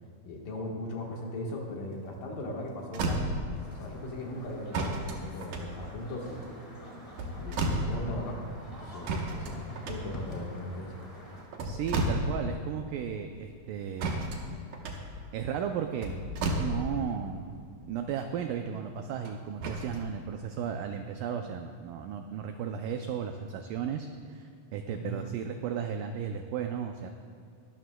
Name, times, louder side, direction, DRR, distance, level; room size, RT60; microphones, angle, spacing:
voice 1, 0.3-3.3 3.7-6.5 7.4-8.4 8.7-9.5 9.9-10.9 24.9-25.3, left 1 dB, 65° left, -1 dB, 2.9 m, -38 dB
sound 1, 2.4-2.5 2.8-3.7 4.7-6.3 7.0-8.2 9.0-10.5 11.3-12.6 12.9-13.0 14.0-17.2 19.2-20.0 20.7-20.8, right 1 dB, 65° right, 2.2 m, -32 dB
sound 2, 3.5-11.4, equal, 25° left, 0.7 m, -47 dB
voice 2, 11.6-14.2 15.3-16.1 16.6-17.5 17.9-27.1, right 7 dB, 85° right, 5 dB, 1.9 m, -35 dB
21.0 x 12.5 x 2.3 m, 2.4 s
omnidirectional pair, 4.4 m